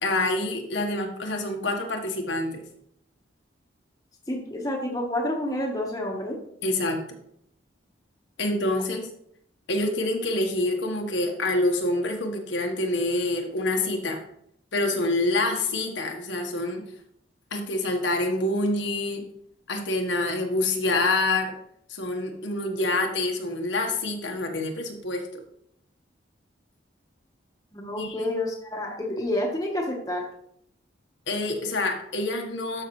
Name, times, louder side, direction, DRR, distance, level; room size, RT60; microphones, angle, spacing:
voice 1, 0.0-2.6 6.6-7.0 8.4-9.1 9.7-14.2 14.7-16.8 17.5-19.2 19.7-21.5 21.9-25.2 28.0-28.2 31.3-32.8, left 2 dB, 75° left, 2 dB, 1.4 m, -26 dB
voice 2, 4.3-6.4 27.7-30.2, left 1 dB, 20° left, 0 dB, 1.3 m, -29 dB
12.5 x 5.7 x 3.2 m, 0.71 s
head